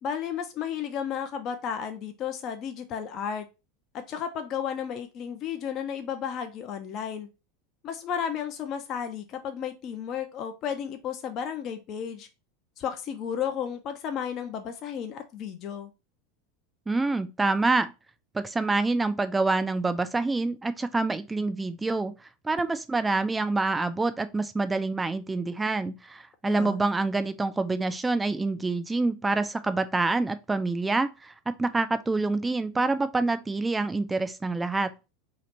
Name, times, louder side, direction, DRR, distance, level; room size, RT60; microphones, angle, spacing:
voice 1, 0.0-3.5 3.9-7.3 7.8-12.3 12.8-15.9 26.5-26.8, left 8 dB, 45° left, 0.5 m, -33 dB
voice 2, 16.9-17.9 18.3-22.1 22.4-31.3 31.6-34.9, right 3 dB, 15° right, 0.4 m, -26 dB
2.9 x 2.5 x 4.2 m
hypercardioid pair, 90°, 0 cm